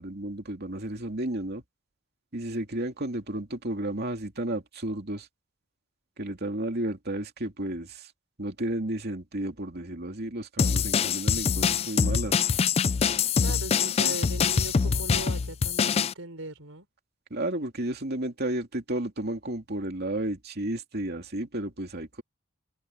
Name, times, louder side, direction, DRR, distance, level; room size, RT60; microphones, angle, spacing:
voice 1, 0.0-1.6 2.3-5.3 6.2-8.1 8.4-12.4 14.0-14.2 17.3-22.2, right 1 dB, 50° right, 2.7 m, -32 dB
sound 1, 10.6-16.1, left 6 dB, 30° left, 0.3 m, -24 dB
voice 2, 13.4-16.9, right 2 dB, 70° right, 5.4 m, -39 dB
head